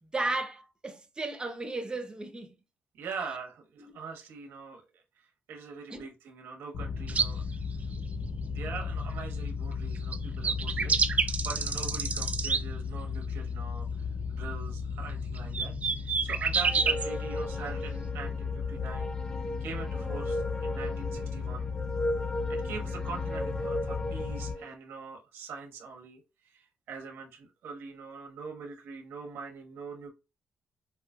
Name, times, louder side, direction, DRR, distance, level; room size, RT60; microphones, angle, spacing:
voice 1, 0.0-2.5 3.8-3.9 5.9-6.1, right 2 dB, 25° right, 0.8 m, -35 dB
voice 2, 2.9-7.4 8.5-19.1 19.6-21.7 22.5-30.1, right 5 dB, 80° right, 1.2 m, -43 dB
sound 1, 6.7-24.5, left 5 dB, 60° left, 1.2 m, -35 dB
sound 2, 7.1-7.3 10.1-10.2 10.4-12.6 15.4-17.1, right 5 dB, 40° right, 0.5 m, -28 dB
sound 3, 16.6-24.7, left 1 dB, 20° left, 0.5 m, -36 dB
5.5 x 2.0 x 2.4 m
cardioid pair, 80°, 4 cm